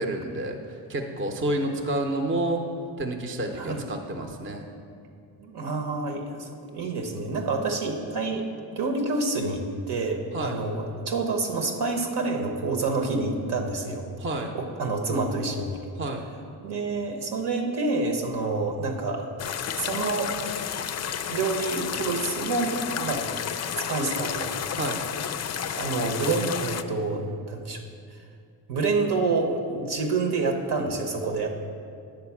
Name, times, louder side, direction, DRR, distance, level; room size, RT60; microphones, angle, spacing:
voice 1, 0.0-2.6 3.0-4.7 10.3-10.6 14.2-14.5 16.0-16.3 24.7-25.0, right 1 dB, 30° right, 4 dB, 0.7 m, -29 dB
voice 2, 5.4-8.5 8.7-14.0 14.5-15.8 16.6-19.3 19.7-20.3 21.3-23.2 23.8-24.5 25.7-27.8 28.7-31.5, right 3 dB, 70° right, 3 dB, 1.2 m, -28 dB
sound 1, 19.4-26.8, left 8 dB, 40° left, 0.4 m, -31 dB
9.5 x 4.0 x 7.1 m, 2.4 s
cardioid pair, 85°, 41 cm